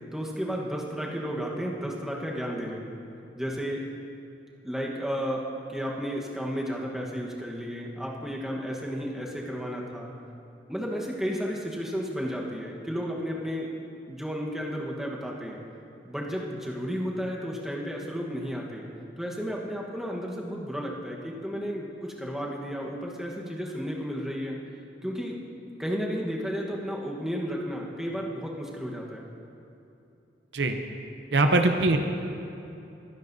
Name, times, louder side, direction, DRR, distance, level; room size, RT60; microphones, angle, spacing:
voice 1, 0.1-2.9 3.4-3.8 4.6-5.4 5.7-10.1 10.7-15.6 16.0-18.9 19.2-24.6 25.0-25.4 25.8-29.3, equal, 5° right, -2 dB, 1.2 m, -33 dB
voice 2, 31.3-32.0, right 2 dB, 65° right, 6 dB, 0.7 m, -21 dB
21.5 x 10.5 x 2.7 m, 2.8 s
head